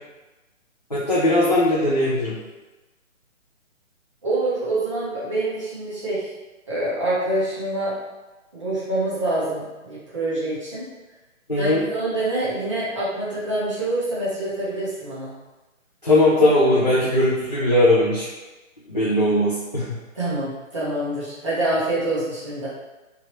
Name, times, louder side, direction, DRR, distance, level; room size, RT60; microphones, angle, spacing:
voice 1, 0.9-2.4 11.5-11.8 16.0-18.3 18.9-20.0, left 1 dB, 35° left, -10 dB, 0.4 m, -19 dB
voice 2, 4.2-6.3 6.7-7.9 8.5-10.8 11.6-15.3 20.1-22.7, right 1 dB, 25° right, -9 dB, 0.8 m, -26 dB
3.1 x 2.7 x 2.9 m, 1.1 s
hypercardioid pair, 170°, 40 cm